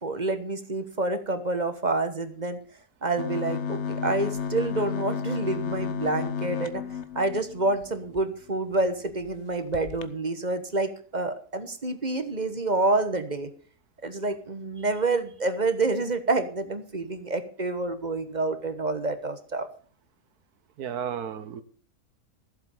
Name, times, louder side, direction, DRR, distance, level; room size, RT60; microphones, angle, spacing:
voice 1, 0.0-2.6 3.0-6.8 7.1-13.5 14.0-19.7, right 2 dB, 30° right, 9 dB, 1.4 m, -28 dB
sound 1, 3.2-8.2 8.7-8.8 9.1-9.3 9.7-10.1, left 6 dB, 55° left, 1.1 m, -32 dB
voice 2, 20.8-21.6, right 8 dB, 85° right, 12 dB, 1.6 m, -33 dB
14.5 x 7.8 x 7.1 m, 0.42 s
omnidirectional pair, 1.6 m